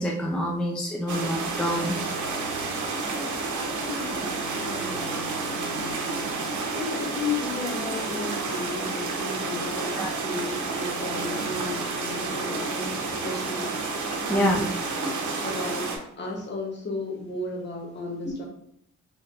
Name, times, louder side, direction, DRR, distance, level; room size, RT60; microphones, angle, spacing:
voice 1, 0.0-2.0 10.0-10.1 14.3-14.6, equal, 5° left, -1 dB, 0.4 m, -26 dB
sound 1, 1.1-16.0, right 3 dB, 75° right, 0.8 m, -30 dB
voice 2, 3.8-6.0 6.7-13.7 14.2-14.6 15.0-15.1 15.4-18.5, left 3 dB, 35° left, 0 dB, 0.9 m, -34 dB
3.9 x 3.1 x 2.4 m, 0.70 s
cardioid pair, 125°, 30 cm